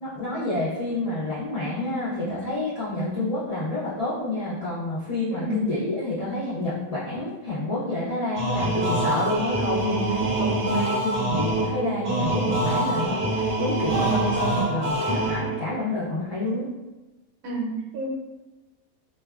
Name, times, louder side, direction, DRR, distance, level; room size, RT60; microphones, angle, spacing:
voice 1, 0.0-16.7, left 1 dB, 55° left, -11 dB, 0.4 m, -28 dB
voice 2, 5.3-5.7 17.4-18.1, right 1 dB, 75° right, -2 dB, 1.0 m, -30 dB
sound 1, 8.4-15.7, right 2 dB, 55° right, 0.6 m, -25 dB
2.4 x 2.2 x 2.3 m, 1.1 s
omnidirectional pair, 1.5 m